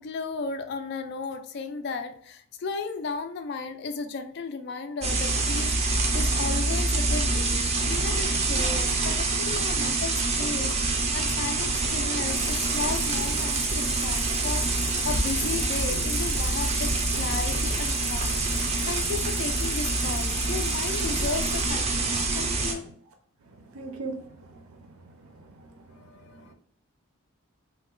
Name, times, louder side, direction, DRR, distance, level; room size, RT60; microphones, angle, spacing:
voice 1, 0.0-5.8 6.1-14.7 15.0-18.3 18.9-22.8 26.0-26.5, left 4 dB, 50° left, 8 dB, 0.3 m, -34 dB
sound 1, 5.0-22.7, right 3 dB, 30° right, 0.4 m, -26 dB
sound 2, 12.3-21.7, left 2 dB, 90° left, 1.0 m, -36 dB
voice 2, 23.4-26.5, right 3 dB, 85° right, 5 dB, 0.5 m, -42 dB
2.8 x 2.0 x 3.7 m, 0.62 s
head